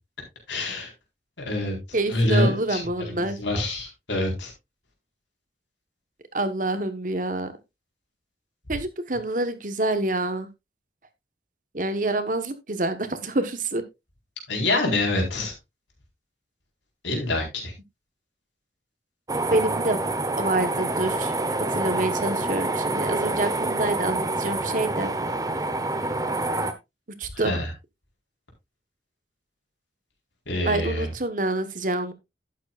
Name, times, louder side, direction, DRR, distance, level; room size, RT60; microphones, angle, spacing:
voice 1, 0.5-0.9 1.5-1.8 2.1-4.5 14.5-15.5 17.0-17.7 27.3-27.7 30.5-31.1, left 1 dB, 85° left, 1 dB, 4.3 m, -26 dB
voice 2, 1.9-3.4 6.3-7.5 8.7-10.5 11.7-13.8 19.5-20.0 20.4-21.3 21.6-25.1 27.2-27.5 30.7-32.1, right 2 dB, 45° right, 10 dB, 1.2 m, -27 dB
sound 1, 19.3-26.7, right 2 dB, 20° right, 0.9 m, -27 dB
11.5 x 9.3 x 2.4 m, 0.21 s
head